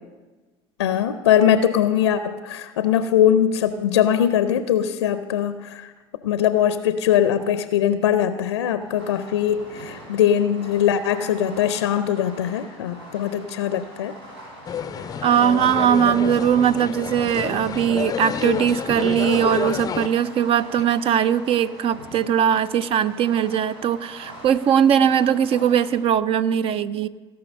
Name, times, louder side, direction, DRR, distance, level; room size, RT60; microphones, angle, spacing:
voice 1, 0.8-5.9 6.2-14.2 15.4-15.7, left 9 dB, 80° left, 12 dB, 0.5 m, -21 dB
Fireworks, 8.8-26.1, equal, 70° right, 3.4 m, -43 dB
sound 1, 14.6-20.1, left 8 dB, 25° left, 0.5 m, -29 dB
voice 2, 15.2-27.1, right 9 dB, 40° right, 16 dB, 0.5 m, -20 dB
17.0 x 5.7 x 6.5 m, 1.3 s
hypercardioid pair, 70°, 14 cm